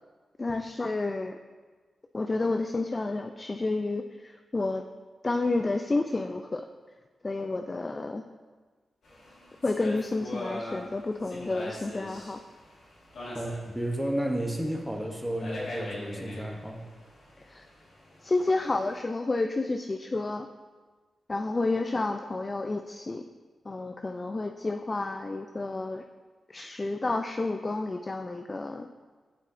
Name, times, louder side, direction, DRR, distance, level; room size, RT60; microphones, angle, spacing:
voice 1, 0.4-1.4 2.1-4.8 5.2-6.6 7.2-8.2 9.6-12.4 17.5-17.7 18.2-20.5 21.3-23.2 23.7-26.0 26.5-28.9, left 2 dB, 35° left, 6 dB, 0.3 m, -30 dB
sound 1, 9.0-18.9, left 1 dB, 75° left, 1.8 m, -42 dB
voice 2, 13.3-16.8, right 1 dB, 5° right, 1 dB, 0.8 m, -32 dB
8.4 x 5.5 x 2.6 m, 1.4 s
supercardioid pair, 45°, 0 cm